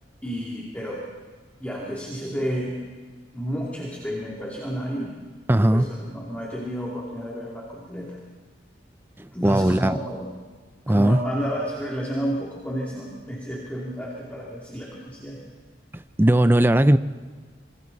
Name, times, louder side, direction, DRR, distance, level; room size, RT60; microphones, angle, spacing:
voice 1, 0.2-1.0 1.6-2.8 3.3-5.1 5.7-8.2 9.3-10.3 10.9-15.4, equal, 10° left, 2.7 m, -31 dB
voice 2, 5.5-5.9 9.2-10.0 10.9-11.2 16.2-17.0, right 1 dB, 10° right, 0.5 m, -18 dB
27.0 x 24.0 x 4.1 m
head